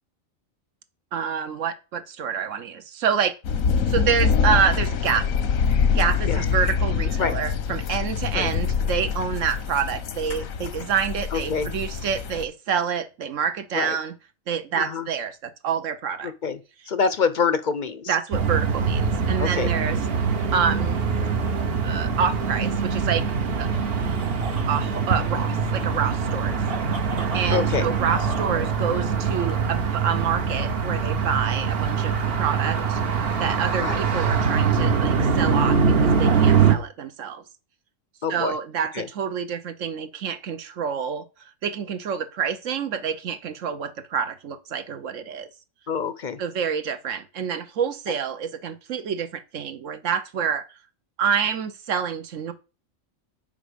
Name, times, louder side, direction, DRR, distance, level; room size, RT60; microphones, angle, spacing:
voice 1, 1.1-3.3 3.9-5.2 5.9-14.1 14.5-16.3 18.1-20.0 20.5-21.1 21.8-23.2 23.6-23.7 24.7-26.6 27.3-33.0 33.4-37.4 38.3-41.2 41.6-45.5 46.4-50.6 51.2-52.5, right 7 dB, 70° right, 1.2 m, -27 dB
sound 1, 3.4-12.4, left 6 dB, 90° left, 1.3 m, -25 dB
voice 2, 11.3-11.7 13.7-14.0 14.7-15.1 16.2-16.6 16.9-18.2 19.4-19.7 27.5-27.9 33.8-34.0 38.2-38.5 38.9-39.1 45.9-46.4, left 5 dB, 50° left, 0.6 m, -26 dB
sound 2, 18.3-36.7, right 5 dB, 50° right, 1.1 m, -23 dB
sound 3, 19.7-29.8, right 2 dB, 30° right, 1.1 m, -41 dB
7.3 x 5.0 x 5.1 m
omnidirectional pair, 1.4 m